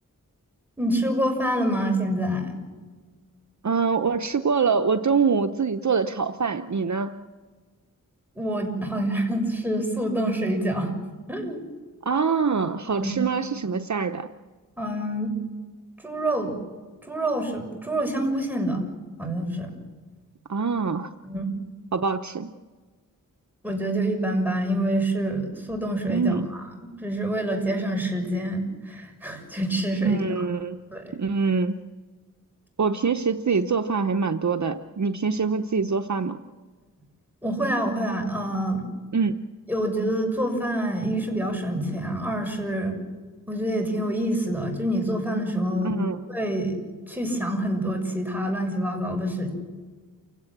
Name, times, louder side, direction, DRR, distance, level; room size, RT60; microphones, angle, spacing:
voice 1, 0.8-2.5 8.3-10.9 11.3-11.6 13.0-13.1 14.8-15.3 16.0-16.5 17.1-18.8 19.2-19.7 21.2-21.5 23.6-26.7 27.0-30.2 30.9-31.2 37.4-38.8 39.7-43.0 43.5-46.0 46.3-46.8 47.1-49.5, right 1 dB, 5° right, 2 dB, 6.6 m, -26 dB
voice 2, 3.6-7.1 12.1-14.3 20.5-21.1 21.9-22.5 26.1-26.5 30.0-30.8 31.1-31.8 32.8-36.4 39.1-39.3 45.8-46.2, right 5 dB, 55° right, 7 dB, 0.8 m, -24 dB
29.0 x 17.0 x 7.5 m, 1.4 s
wide cardioid pair, 60°, 33 cm